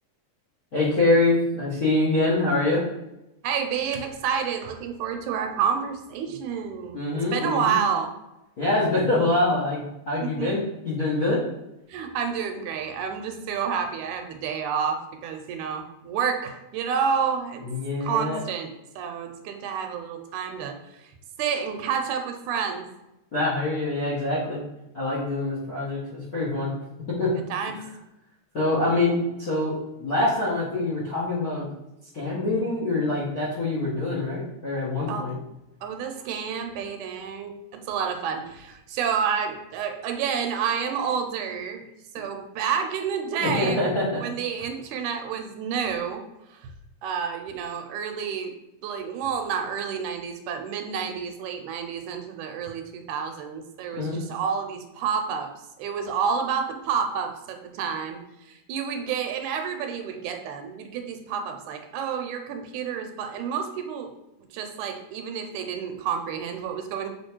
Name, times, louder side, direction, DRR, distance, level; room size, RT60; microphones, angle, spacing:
voice 1, 0.7-2.8 6.9-7.8 8.6-11.4 17.6-18.4 23.3-24.6 24.9-26.7 27.1-27.3 28.5-31.7 32.1-35.3 43.4-44.2 53.9-54.2, left 2 dB, 50° left, -8 dB, 1.1 m, -25 dB
voice 2, 3.4-8.1 10.2-10.5 11.9-17.6 18.0-18.7 19.0-21.1 21.4-22.9 27.5-27.9 35.1-35.3 35.8-41.8 42.2-43.9 44.2-46.2 46.5-46.7 47.0-48.5 48.8-55.5 55.8-64.1 64.5-67.1, right 7 dB, 80° right, 5 dB, 2.1 m, -29 dB
7.1 x 3.0 x 4.4 m, 0.92 s
omnidirectional pair, 3.5 m